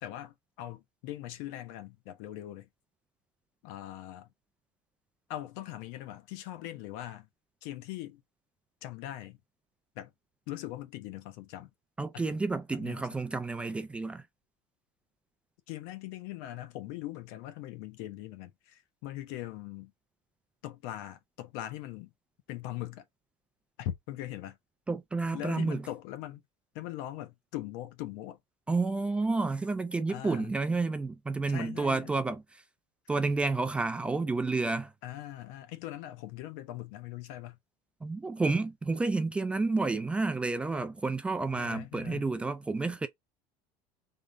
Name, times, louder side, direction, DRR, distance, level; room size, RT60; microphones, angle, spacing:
voice 1, 0.0-2.7 3.6-4.3 5.3-7.3 7.6-8.2 8.8-9.4 9.9-10.1 10.5-11.7 12.1-12.3 12.7-13.2 15.7-19.9 20.6-22.1 22.5-23.0 23.8-24.6 25.3-26.4 26.7-28.4 30.1-30.5 31.5-32.1 35.0-37.6 41.6-42.3, left 13 dB, 70° left, 1.1 m, -41 dB
voice 2, 12.0-14.2 24.9-25.8 28.7-32.6 33.1-34.9 38.0-43.1, right 3 dB, 10° right, 0.4 m, -30 dB
3.7 x 3.4 x 3.9 m
cardioid pair, 165°, 12 cm